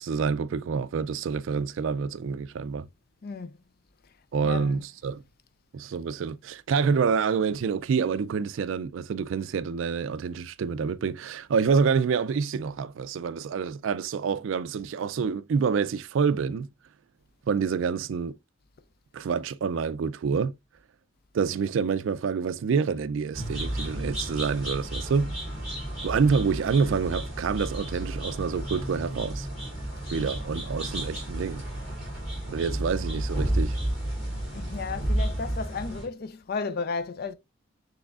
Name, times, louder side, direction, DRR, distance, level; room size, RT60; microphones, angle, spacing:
voice 1, 0.0-2.9 4.3-5.2 5.7-16.7 17.5-18.3 19.1-20.5 21.3-25.3 26.0-29.5 30.1-31.6 32.5-33.8, right 5 dB, 70° right, 0.4 m, -27 dB
voice 2, 3.2-3.6 4.4-4.8 34.5-37.3, left 4 dB, 50° left, 0.4 m, -33 dB
sound 1, 23.3-36.0, right 1 dB, ahead, 3.3 m, -32 dB
6.2 x 3.4 x 2.4 m
head